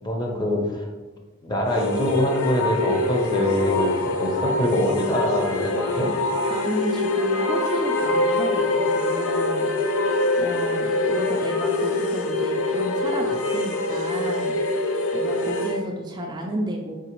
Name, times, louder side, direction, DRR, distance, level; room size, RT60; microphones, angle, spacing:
voice 1, 0.0-0.9 1.4-6.1, left 1 dB, 20° left, 0 dB, 0.7 m, -24 dB
sound 1, 1.6-15.8, left 2 dB, 85° left, 0.5 m, -24 dB
voice 2, 6.5-9.7 10.4-14.6 15.1-16.9, right 1 dB, 20° right, 0 dB, 0.3 m, -31 dB
4.1 x 3.8 x 2.9 m, 1.3 s
head